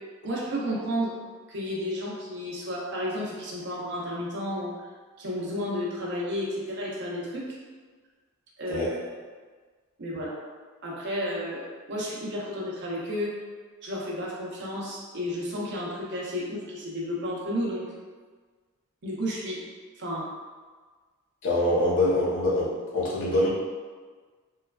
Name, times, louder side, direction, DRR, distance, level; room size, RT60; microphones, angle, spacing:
voice 1, 0.2-1.2 1.5-4.7 5.2-7.6 8.6-8.9 10.0-10.3 10.8-11.6 11.9-13.3 13.8-17.8 19.0-19.6 20.0-20.2, equal, 50° right, -5 dB, 0.6 m, -32 dB
voice 2, 21.4-22.7 22.9-23.5, left 1 dB, 55° left, -6 dB, 0.7 m, -24 dB
3.0 x 2.2 x 2.3 m, 1.5 s
head